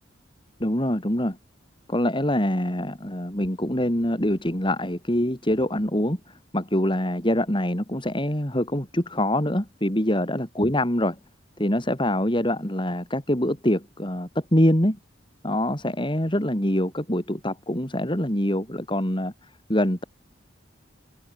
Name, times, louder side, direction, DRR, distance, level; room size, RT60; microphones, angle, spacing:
voice 1, 0.6-1.4 1.9-6.2 6.5-11.2 11.6-15.0 15.4-19.3 19.7-20.0, left 1 dB, 25° left, 5.1 m, -24 dB
open air
head